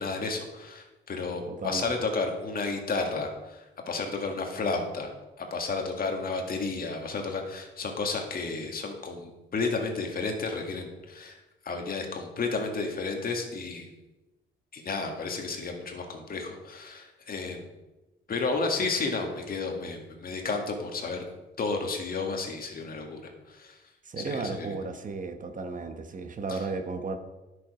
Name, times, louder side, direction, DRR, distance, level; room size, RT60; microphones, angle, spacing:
voice 1, 0.0-5.1 5.4-13.9 14.7-17.7 18.3-21.2 21.6-23.8 24.2-24.8 26.5-26.6, left 3 dB, 50° left, 3 dB, 1.9 m, -32 dB
voice 2, 1.5-1.9 24.0-27.2, right 3 dB, 40° right, 7 dB, 1.0 m, -34 dB
10.0 x 6.8 x 4.9 m, 1.1 s
cardioid pair, 90°, 20 cm